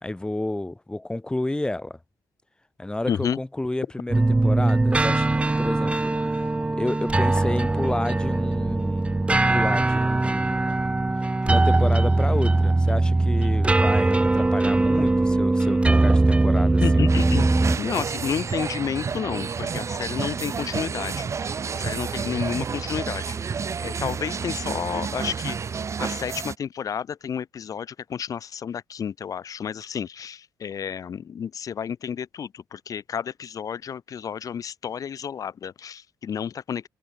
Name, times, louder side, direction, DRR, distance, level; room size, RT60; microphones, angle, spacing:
voice 1, 0.0-2.0 2.8-5.3 5.6-9.2 9.5-10.8 11.4-17.2 18.0-18.1, left 1 dB, 10° left, 4.1 m, -31 dB
voice 2, 3.1-3.4 16.8-17.5 17.8-21.3 21.7-23.4 23.8-25.6 26.0-36.9, left 8 dB, 55° left, 1.5 m, -31 dB
sound 1, 4.1-17.8, right 2 dB, 15° right, 2.0 m, -21 dB
sound 2, 17.1-26.5, right 6 dB, 45° right, 3.5 m, -30 dB
cardioid pair, 90°, 7 cm